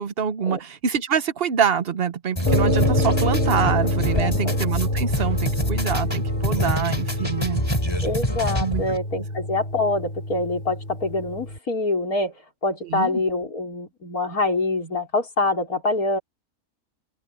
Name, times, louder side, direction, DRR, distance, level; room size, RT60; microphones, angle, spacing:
voice 1, 0.0-7.6 8.6-8.8 12.8-13.2, right 7 dB, 45° right, 1.0 m, -25 dB
sound 1, 2.4-9.0, equal, 15° left, 7.2 m, -27 dB
sound 2, 2.5-11.6, left 1 dB, 40° left, 4.2 m, -26 dB
voice 2, 4.2-4.6 8.0-12.3 12.6-16.2, left 2 dB, 75° left, 5.4 m, -25 dB
open air
omnidirectional pair, 1.6 m